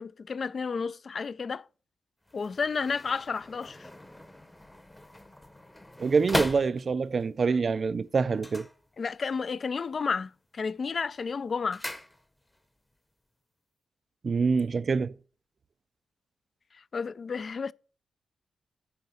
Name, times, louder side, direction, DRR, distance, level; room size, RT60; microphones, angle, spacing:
voice 1, 0.0-1.6 2.3-3.9 9.0-11.8 16.9-17.7, left 5 dB, 45° left, 0.3 m, -31 dB
sound 1, 2.2-7.3 8.3-9.4 9.7-10.2 10.6-12.7 12.9-13.0, left 1 dB, 10° left, 0.8 m, -38 dB
voice 2, 6.0-8.7 14.2-15.1, right 5 dB, 40° right, 0.3 m, -26 dB
9.6 x 4.7 x 6.8 m
wide cardioid pair, 120°, 0 cm